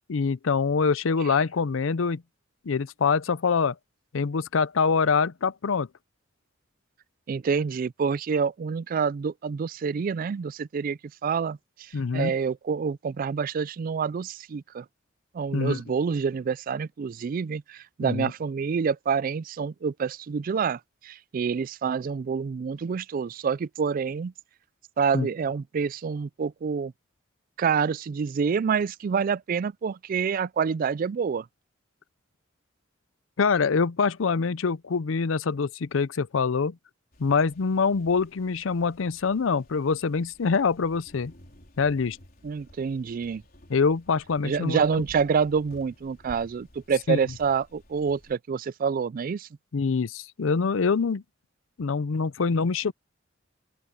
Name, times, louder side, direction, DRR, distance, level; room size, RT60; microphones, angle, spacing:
voice 1, 0.1-2.2 2.7-3.7 4.1-5.9 11.9-12.3 15.5-15.8 18.0-18.3 25.1-25.3 33.4-36.8 37.2-41.3 41.8-42.2 43.7-44.8 47.1-47.2 49.7-51.2 51.8-52.9, left 5 dB, 90° left, 0.6 m, -25 dB
voice 2, 7.3-14.8 15.3-24.3 25.0-26.9 27.6-31.5 42.4-43.4 44.4-49.5, right 6 dB, 45° right, 0.3 m, -27 dB
sound 1, 37.1-48.4, equal, 50° left, 4.4 m, -53 dB
open air
head